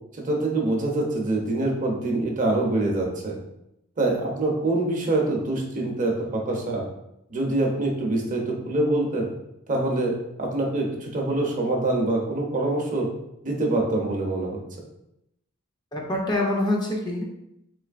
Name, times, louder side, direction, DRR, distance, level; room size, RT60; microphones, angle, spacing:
voice 1, 0.2-3.4 4.0-6.8 7.3-9.3 9.7-10.1 10.4-13.1 13.4-14.6, right 2 dB, 40° right, 0 dB, 0.7 m, -25 dB
voice 2, 15.9-17.3, left 1 dB, 20° left, -1 dB, 0.6 m, -25 dB
3.7 x 3.1 x 2.4 m, 0.83 s
head